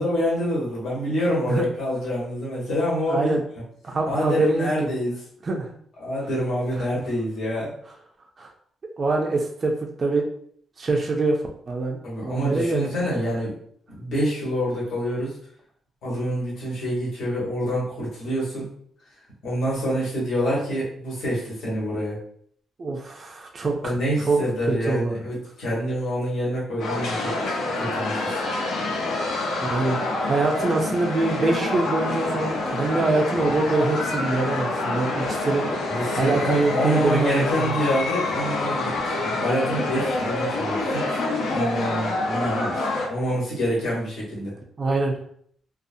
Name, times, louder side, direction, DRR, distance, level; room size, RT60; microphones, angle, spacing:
voice 1, 0.0-3.4 3.9-5.2 6.0-7.7 12.0-13.6 13.9-15.4 16.0-18.7 19.4-22.2 23.8-27.4 27.8-28.4 35.9-38.9 39.2-41.2 41.5-44.5, equal, 65° left, -6 dB, 1.1 m, -26 dB
voice 2, 3.1-3.4 3.8-4.9 5.4-5.7 6.8-6.9 8.4-8.5 9.0-10.3 10.8-11.4 11.7-12.9 22.8-24.0 24.3-24.4 24.7-25.2 29.6-35.7 36.2-37.7 44.8-45.2, right 3 dB, 30° right, 0 dB, 0.4 m, -24 dB
sound 1, 26.8-43.1, left 2 dB, 80° left, 0.7 m, -27 dB
2.5 x 2.3 x 2.6 m, 0.62 s
cardioid pair, 165°, 0 cm